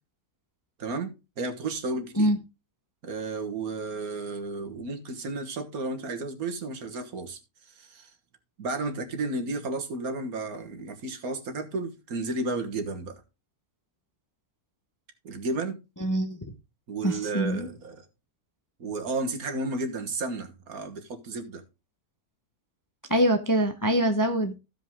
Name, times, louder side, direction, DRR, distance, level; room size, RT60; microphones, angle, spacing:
voice 1, 0.8-1.1 1.4-2.3 3.0-7.4 7.8-8.1 8.6-13.2 15.2-15.8 16.9-18.0 18.8-21.6, right 3 dB, 70° right, 1.8 m, -32 dB
voice 2, 16.0-16.4 17.0-17.7 23.1-24.6, right 1 dB, 15° left, 0.7 m, -24 dB
15.0 x 5.3 x 3.6 m
omnidirectional pair, 1.6 m